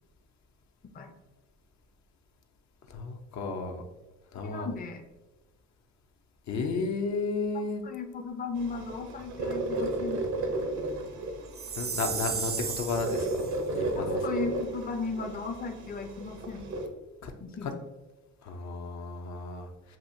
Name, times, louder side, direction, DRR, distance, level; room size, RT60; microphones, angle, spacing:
voice 1, 2.9-3.8 4.3-4.7 6.5-7.8 11.7-14.2 17.2-17.3 17.6-17.7 18.4-20.0, left 4 dB, 65° left, 4 dB, 0.7 m, -33 dB
voice 2, 4.3-5.0 7.8-10.2 13.9-16.7 17.4-17.7, left 4 dB, 30° left, 4 dB, 0.5 m, -36 dB
sound 1, 8.6-16.9, right 2 dB, 70° right, 0.8 m, -34 dB
Chime, 11.5-13.5, right 6 dB, 35° right, 0.5 m, -34 dB
7.2 x 2.5 x 2.7 m, 1.1 s
cardioid pair, 90°, 30 cm